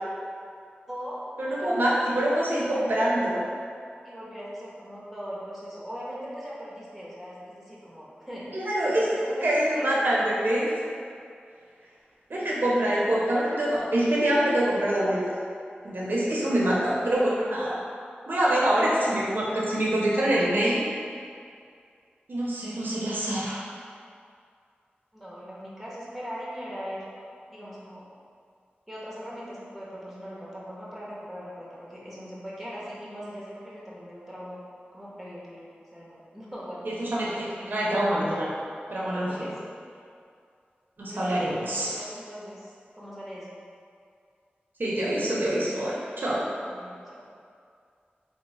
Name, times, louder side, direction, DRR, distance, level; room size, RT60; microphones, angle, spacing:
voice 1, 0.9-1.2 1.6-2.3 2.6-2.9 4.0-9.9 12.3-13.1 25.1-27.1 27.5-28.0 28.9-34.6 34.9-36.9 39.1-39.7 41.1-41.5 41.8-43.5 46.6-47.0, equal, ahead, -7 dB, 0.8 m, -40 dB
voice 2, 1.4-3.4 8.5-9.0 9.4-10.7 12.3-15.2 15.8-17.8 18.3-20.8 22.3-23.6 36.8-38.5 38.9-39.5 41.0-42.0 44.8-46.5, right 1 dB, 60° right, -6 dB, 0.6 m, -25 dB
3.0 x 2.0 x 4.0 m, 2.3 s
wide cardioid pair, 70°, 4 cm